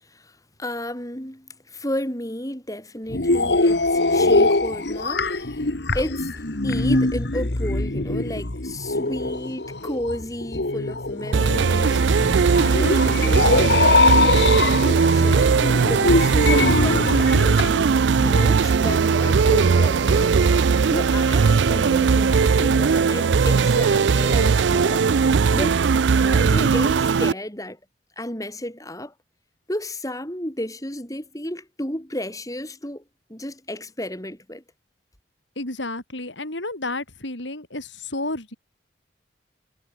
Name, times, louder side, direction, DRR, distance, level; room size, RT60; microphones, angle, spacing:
voice 1, 0.0-5.6 5.9-15.5 15.9-20.3 20.9-25.1 25.5-25.8 26.2-27.8 28.2-29.1 29.7-33.0 33.3-34.6, left 1 dB, 20° left, 6.6 m, -32 dB
sound 1, 3.1-17.7, left 2 dB, 65° left, 1.7 m, -22 dB
sound 2, 11.3-27.3, right 5 dB, 75° right, 0.4 m, -18 dB
voice 2, 35.6-38.6, left 2 dB, 80° left, 5.8 m, -31 dB
head